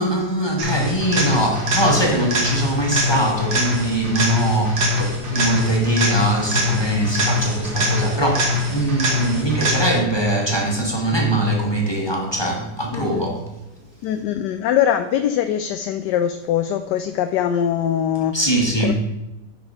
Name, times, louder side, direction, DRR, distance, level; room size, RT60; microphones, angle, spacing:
voice 1, 0.0-13.4 18.3-18.9, right 1 dB, 15° left, 1.3 m, -21 dB
sound 1, 0.6-10.2 18.2-18.3, left 1 dB, 80° right, 2.2 m, -23 dB
voice 2, 12.9-13.3 14.0-18.3 18.8-18.9, left 10 dB, 75° left, 1.1 m, -22 dB
9.6 x 4.5 x 5.4 m
omnidirectional pair, 2.0 m